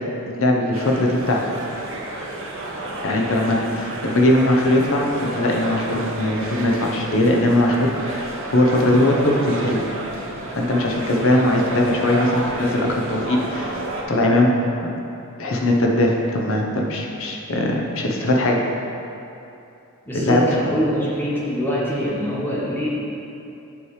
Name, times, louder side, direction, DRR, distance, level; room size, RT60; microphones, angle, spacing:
voice 1, 0.3-1.4 3.0-9.8 10.5-13.8 14.1-14.5 14.8-14.9 15.4-18.6 20.1-20.4, left 1 dB, 65° left, 0 dB, 0.8 m, -20 dB
sound 1, 0.7-14.0, right 1 dB, 65° right, 0.8 m, -31 dB
voice 2, 20.0-22.9, equal, 10° left, -7 dB, 1.3 m, -23 dB
8.2 x 3.2 x 4.8 m, 2.8 s
head